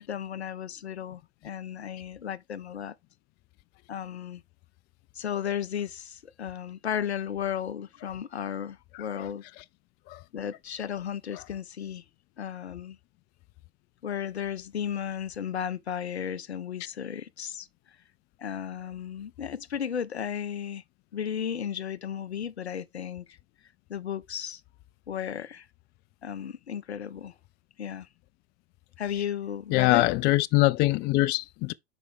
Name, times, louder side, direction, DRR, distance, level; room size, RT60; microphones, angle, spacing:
voice 1, 0.0-2.9 3.9-4.4 5.2-9.4 10.3-12.0 12.4-13.0 14.0-17.7 18.4-20.8 21.1-23.4 23.9-24.6 25.1-25.7 26.2-27.3 27.8-28.1 29.0-30.1, left 8 dB, 85° left, 0.5 m, -34 dB
voice 2, 29.7-31.7, left 19 dB, 35° left, 0.4 m, -23 dB
5.5 x 4.8 x 3.5 m
figure-of-eight pair, 80°, 32 cm